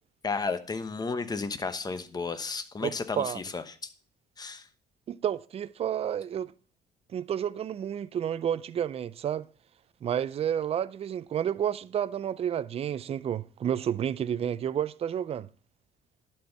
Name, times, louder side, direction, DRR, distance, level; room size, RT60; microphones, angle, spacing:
voice 1, 0.2-3.6 4.4-4.7, left 4 dB, 25° left, 0.9 m, -33 dB
voice 2, 2.8-3.4 5.1-6.5 7.1-9.5 10.0-15.5, right 9 dB, 35° right, 0.4 m, -30 dB
11.5 x 4.5 x 6.8 m
cardioid pair, 110°, 17 cm